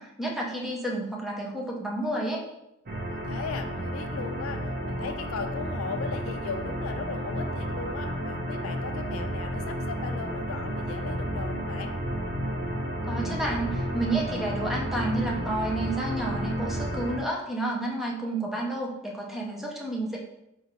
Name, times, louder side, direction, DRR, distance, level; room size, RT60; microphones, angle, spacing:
voice 1, 0.0-2.4 13.1-20.2, right 1 dB, ahead, -2 dB, 0.7 m, -30 dB
sound 1, 2.9-17.2, equal, 45° right, 0.8 m, -32 dB
voice 2, 3.0-11.9, left 5 dB, 70° left, 7 dB, 0.4 m, -37 dB
4.4 x 3.6 x 3.0 m, 0.87 s
head